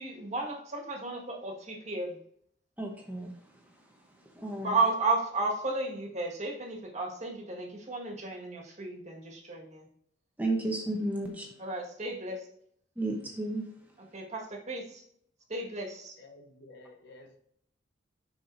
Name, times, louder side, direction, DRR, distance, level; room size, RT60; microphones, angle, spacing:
voice 1, 0.0-2.2 4.6-9.9 11.6-12.5 14.1-15.0 15.5-16.2, right 3 dB, 35° right, 0 dB, 1.8 m, -33 dB
voice 2, 2.8-4.8 10.4-11.6 13.0-13.6 14.0-14.1, right 2 dB, 10° right, 0 dB, 1.0 m, -34 dB
voice 3, 16.2-17.4, left 2 dB, 65° left, 4 dB, 1.2 m, -52 dB
7.3 x 5.8 x 2.7 m, 0.68 s
head